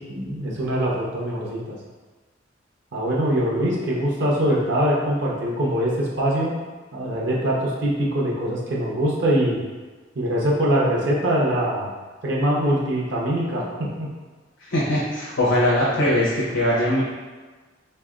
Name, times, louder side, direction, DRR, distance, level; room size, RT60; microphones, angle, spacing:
voice 1, 0.1-1.6 2.9-6.5 6.9-9.6 10.1-11.9 12.2-13.6 14.0-14.1, right 1 dB, 65° right, -4 dB, 0.8 m, -23 dB
voice 2, 14.6-17.0, left 1 dB, 85° left, -7 dB, 0.8 m, -21 dB
3.8 x 3.2 x 2.4 m, 1.3 s
head